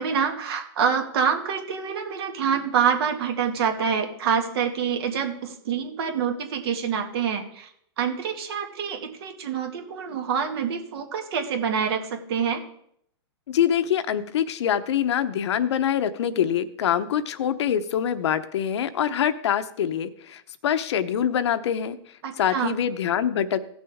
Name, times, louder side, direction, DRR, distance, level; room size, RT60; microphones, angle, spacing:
voice 1, 0.0-7.7 8.0-12.6 22.2-22.8, right 7 dB, 60° right, 4 dB, 2.1 m, -26 dB
voice 2, 13.5-22.0 22.4-23.6, left 9 dB, 75° left, 11 dB, 0.9 m, -24 dB
17.0 x 6.3 x 3.6 m, 0.68 s
hypercardioid pair, 150°, 14 cm